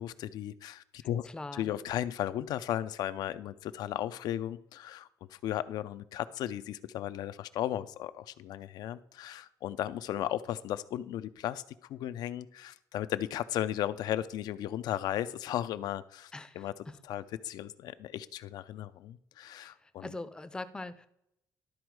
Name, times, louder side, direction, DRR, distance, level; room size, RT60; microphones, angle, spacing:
voice 1, 0.0-1.3 1.5-11.6 11.9-16.7 17.1-20.1, left 12 dB, 65° left, 14 dB, 0.4 m, -35 dB
voice 2, 1.2-1.7 16.3-16.7 19.6-21.1, left 2 dB, 10° left, 11 dB, 0.5 m, -42 dB
12.0 x 4.3 x 4.7 m, 0.76 s
cardioid pair, 155°, 7 cm